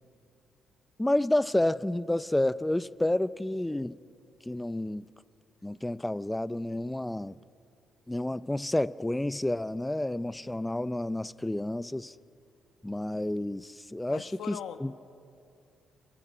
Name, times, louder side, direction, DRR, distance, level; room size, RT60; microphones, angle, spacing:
voice 1, 1.0-4.0 4.4-5.1 5.6-7.4 8.1-12.2 12.8-14.9, left 1 dB, 10° left, 0.5 m, -30 dB
voice 2, 14.1-15.0, left 8 dB, 80° left, 1.4 m, -40 dB
29.0 x 24.0 x 5.0 m
cardioid pair, 90°, 0 cm